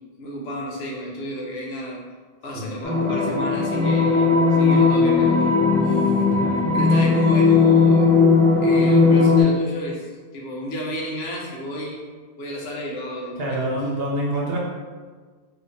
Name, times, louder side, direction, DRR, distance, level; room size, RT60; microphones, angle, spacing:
voice 1, 0.2-2.0 2.4-5.6 5.8-6.2 6.7-8.1 8.6-12.0 12.4-13.7, equal, 75° left, -2 dB, 0.9 m, -32 dB
sound 1, 2.8-9.4, left 4 dB, 10° left, 0.4 m, -17 dB
voice 2, 6.3-6.6 13.4-14.6, right 1 dB, 70° right, -3 dB, 0.9 m, -27 dB
3.4 x 2.7 x 2.6 m, 1.5 s
omnidirectional pair, 1.1 m